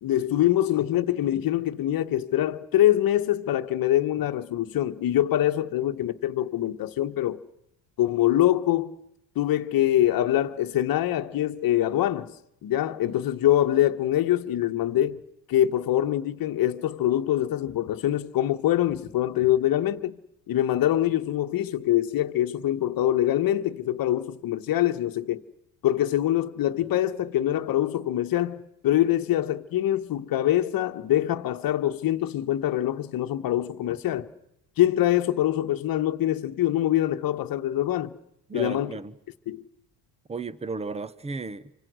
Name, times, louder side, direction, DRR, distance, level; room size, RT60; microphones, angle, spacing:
voice 1, 0.0-7.4 8.0-8.9 9.3-12.3 12.6-15.2 15.5-20.2 20.5-25.4 25.8-34.3 34.8-38.1 38.5-38.9 39.5-39.6, left 12 dB, 50° left, 1.4 m, -24 dB
voice 2, 38.5-39.1 40.3-41.8, right 4 dB, 15° right, 0.9 m, -34 dB
28.0 x 25.0 x 6.3 m
cardioid pair, 125°, 44 cm